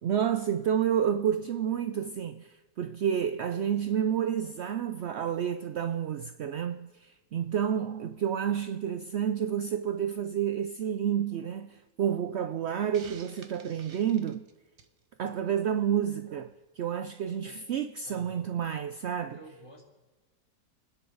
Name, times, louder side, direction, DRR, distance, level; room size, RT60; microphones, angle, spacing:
voice 1, 0.0-14.5 15.2-19.4, right 9 dB, 75° right, 0.6 m, -30 dB
Hiss, 12.9-15.0, right 5 dB, 45° right, 0.9 m, -51 dB
voice 2, 18.0-18.5 19.2-19.8, right 1 dB, 20° left, 2.8 m, -50 dB
29.5 x 10.0 x 3.9 m
omnidirectional pair, 1.8 m